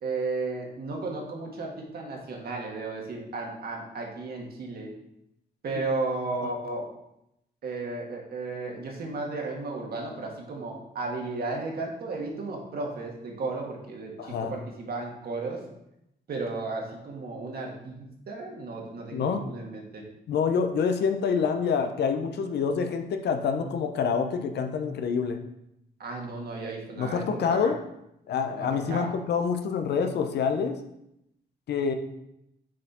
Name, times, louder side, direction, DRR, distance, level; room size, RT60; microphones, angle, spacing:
voice 1, 0.0-4.9 5.6-6.9 7.6-15.6 16.3-20.0 26.0-27.7 28.5-29.2, right 3 dB, 65° right, 0 dB, 1.6 m, -34 dB
voice 2, 14.2-14.6 19.1-19.5 20.3-25.4 27.0-27.8 28.3-30.8 31.7-31.9, left 6 dB, 75° left, 6 dB, 0.7 m, -27 dB
6.3 x 4.4 x 4.2 m, 0.82 s
cardioid pair, 95°, 17 cm